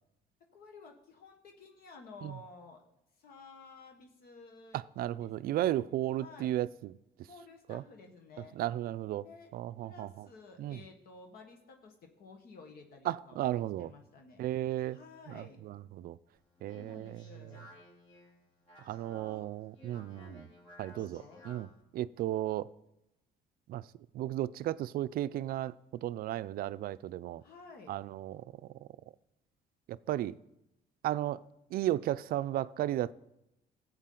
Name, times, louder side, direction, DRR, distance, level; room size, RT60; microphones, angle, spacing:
voice 1, 0.5-2.8 3.2-4.8 5.2-5.7 6.2-6.5 7.2-8.6 9.2-9.5 9.8-13.5 13.8-14.4 14.8-15.6 16.7-17.7 19.0-19.5 20.1-20.4 20.9-21.4 27.4-28.0, left 4 dB, 65° left, 1.4 m, -53 dB
voice 2, 4.7-6.9 7.7-7.8 8.6-9.3 9.5-10.3 10.6-10.8 13.1-13.9 14.4-15.0 15.3-16.2 16.6-17.5 18.9-20.4 20.8-22.7 23.7-23.8 24.1-25.7 26.0-27.4 27.9-28.4 29.9-30.4 31.0-31.4 31.7-33.1, right 13 dB, 65° right, 0.4 m, -34 dB
Speech, 16.4-21.8, left 1 dB, 45° left, 3.8 m, -57 dB
14.5 x 8.1 x 3.8 m
cardioid pair, 110°, 17 cm